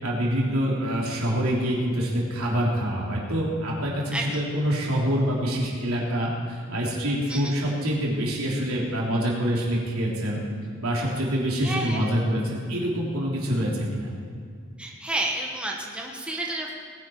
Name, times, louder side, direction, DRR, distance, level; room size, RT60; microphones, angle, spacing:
voice 1, 0.0-10.4 10.8-14.1, equal, 85° right, -4 dB, 3.4 m, -26 dB
voice 2, 11.6-12.0 14.8-16.7, right 1 dB, 5° right, -1 dB, 1.3 m, -30 dB
20.0 x 10.5 x 4.6 m, 2.1 s
head